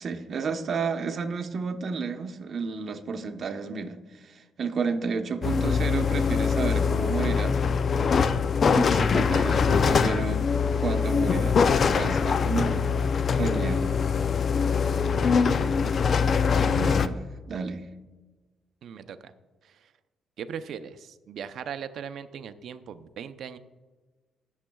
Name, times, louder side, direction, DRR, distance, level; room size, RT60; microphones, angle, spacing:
voice 1, 0.0-7.6 8.7-10.5 10.8-11.6 11.9-12.8 13.3-13.9 16.6-17.9, right 5 dB, 50° right, 6 dB, 0.9 m, -31 dB
sound 1, 5.4-17.1, left 6 dB, 50° left, 0.4 m, -23 dB
voice 2, 15.6-15.9 18.8-19.3 19.6-19.9 20.4-23.6, right 7 dB, 70° right, 11 dB, 0.6 m, -39 dB
20.0 x 7.2 x 2.3 m, 1.3 s
cardioid pair, 90°, 0 cm